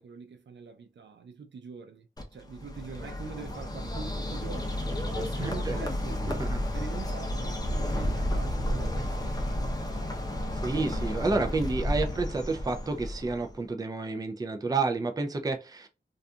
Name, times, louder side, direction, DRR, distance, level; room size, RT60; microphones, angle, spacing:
voice 1, 0.0-4.7 5.1-6.3 6.7-9.5, right 6 dB, 80° right, 0.5 m, -44 dB
Bird, 2.2-13.6, left 1 dB, 20° left, 0.7 m, -32 dB
voice 2, 10.6-15.9, right 3 dB, 20° right, 0.4 m, -30 dB
2.6 x 2.4 x 2.3 m
wide cardioid pair, 75°, 19 cm